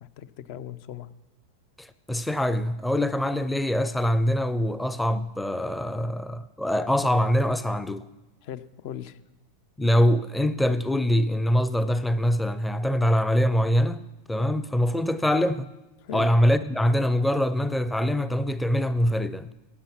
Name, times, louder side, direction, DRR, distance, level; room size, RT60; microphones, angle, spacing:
voice 1, 0.0-1.1 8.4-9.2 16.0-16.3, left 10 dB, 55° left, 0.8 m, -38 dB
voice 2, 1.8-8.0 9.8-14.0 14.3-15.7 16.1-19.5, equal, 5° left, 0.6 m, -24 dB
15.5 x 8.6 x 5.9 m
hypercardioid pair, 105°, 0 cm